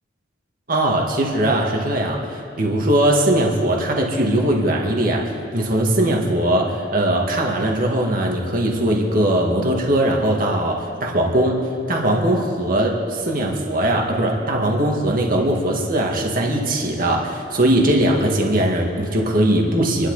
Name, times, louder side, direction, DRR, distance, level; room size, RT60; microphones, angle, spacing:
voice 1, 0.7-5.2 5.5-11.6 11.9-20.1, right 1 dB, 45° right, 0 dB, 2.1 m, -20 dB
28.0 x 12.0 x 4.1 m, 2.5 s
head